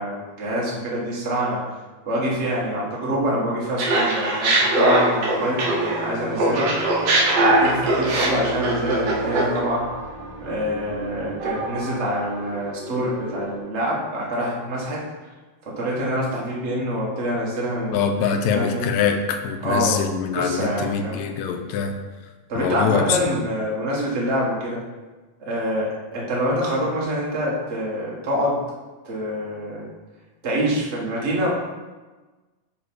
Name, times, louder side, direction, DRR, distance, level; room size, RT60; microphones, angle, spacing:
voice 1, 0.0-1.6 2.0-6.7 7.4-9.9 10.4-15.0 15.6-18.9 19.6-20.0 20.3-21.2 22.5-24.8 25.4-28.6 29.0-29.9 30.4-31.5, equal, 35° right, -5 dB, 1.0 m, -26 dB
Laughter, 3.8-6.1 6.4-9.6, right 2 dB, 70° right, 2.9 m, -20 dB
sound 1, 4.9-13.6, right 2 dB, 90° right, 3.1 m, -33 dB
voice 2, 17.9-22.0 22.6-23.4, left 6 dB, 85° left, 5 dB, 2.2 m, -24 dB
7.5 x 5.2 x 4.7 m, 1.3 s
omnidirectional pair, 3.9 m